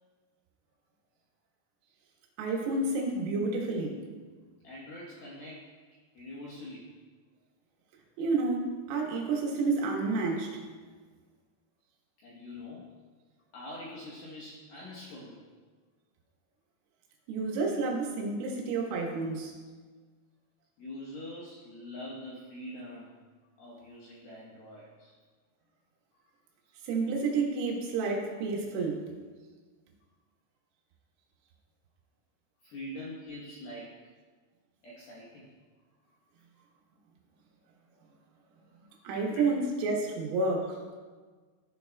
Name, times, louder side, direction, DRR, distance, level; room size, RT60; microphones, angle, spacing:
voice 1, 2.4-4.0 8.2-10.5 17.3-19.6 26.9-29.1 39.1-40.8, right 3 dB, 85° right, 0 dB, 4.0 m, -30 dB
voice 2, 4.6-5.7 6.1-6.9 12.2-12.9 13.5-15.5 20.8-23.1 23.6-25.1 32.6-33.9 34.8-35.5 39.0-39.4, left 1 dB, 75° left, -6 dB, 2.2 m, -44 dB
15.0 x 7.1 x 2.3 m, 1.5 s
omnidirectional pair, 5.9 m